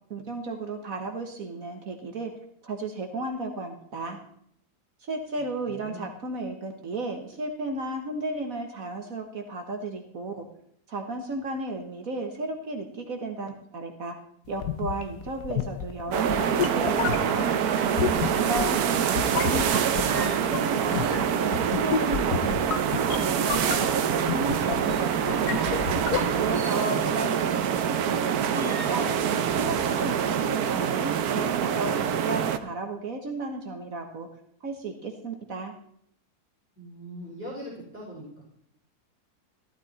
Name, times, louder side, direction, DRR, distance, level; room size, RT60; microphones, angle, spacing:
voice 1, 0.1-2.3 2.6-4.2 5.0-10.5 10.9-14.2 14.5-17.5 18.3-22.7 23.0-25.5 26.4-29.1 29.6-34.3 34.6-35.7, right 2 dB, 60° right, 4 dB, 1.8 m, -34 dB
voice 2, 5.7-6.0 36.8-38.4, equal, 10° right, -6 dB, 4.8 m, -41 dB
sound 1, 14.5-26.7, left 8 dB, 85° left, 1.5 m, -32 dB
sound 2, 16.1-32.6, right 8 dB, 80° right, 1.3 m, -25 dB
sound 3, 19.8-20.5 21.8-23.2 24.2-27.2 28.5-29.1 29.5-30.1, equal, 10° left, 6.9 m, -45 dB
14.5 x 12.5 x 4.3 m, 0.67 s
omnidirectional pair, 1.6 m